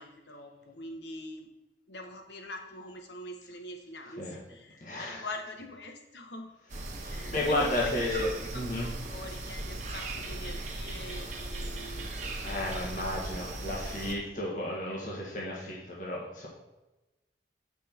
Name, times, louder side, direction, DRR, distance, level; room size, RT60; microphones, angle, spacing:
voice 1, 0.0-1.5 1.9-6.5 7.1-12.7 13.0-13.2 13.8-13.9, left 1 dB, 80° left, 4 dB, 1.4 m, -44 dB
voice 2, 4.8-5.2 7.0-8.9 12.4-16.5, left 1 dB, 45° left, -4 dB, 1.7 m, -33 dB
sound 1, 6.7-14.1, right 2 dB, 45° right, 1.3 m, -38 dB
8.8 x 6.2 x 4.5 m, 1.1 s
head